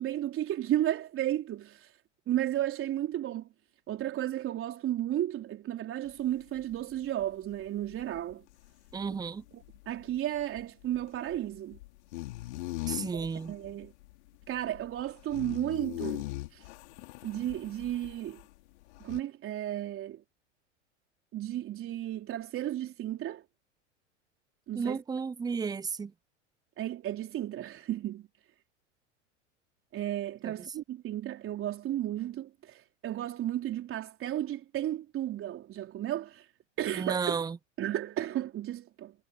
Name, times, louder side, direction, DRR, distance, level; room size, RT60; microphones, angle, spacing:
voice 1, 0.0-1.9 2.3-3.5 3.9-8.4 9.5-11.8 13.1-13.9 14.5-16.2 16.5-16.6 17.2-18.4 19.0-20.2 21.3-23.4 24.7-25.0 26.8-28.3 29.9-36.5 36.8-37.4 37.8-39.1, right 12 dB, 35° right, 4.1 m, -33 dB
sound 1, 6.1-18.5 18.8-19.2, left 19 dB, 60° left, 3.1 m, -41 dB
voice 2, 8.9-9.4 12.9-13.5 24.8-26.1 30.4-30.5 36.9-37.6, right 5 dB, 10° right, 0.8 m, -33 dB
hypercardioid pair, 100°, 37 cm